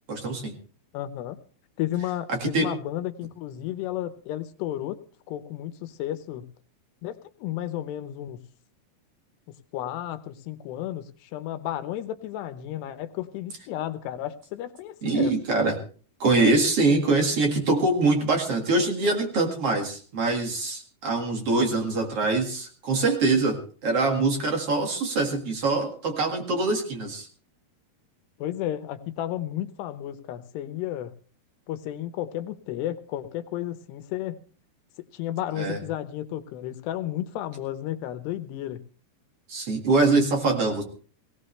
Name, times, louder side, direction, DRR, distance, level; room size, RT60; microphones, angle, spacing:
voice 1, 0.1-0.5 2.3-2.7 15.0-15.8 16.2-27.3 35.6-35.8 39.5-40.8, right 3 dB, 45° right, 2 dB, 2.5 m, -24 dB
voice 2, 0.9-1.4 1.8-5.0 5.3-6.5 7.0-8.4 9.7-15.3 28.4-31.1 31.7-34.4 35.1-38.8, left 12 dB, 85° left, 9 dB, 3.1 m, -33 dB
19.0 x 17.0 x 3.3 m, 0.42 s
omnidirectional pair, 4.7 m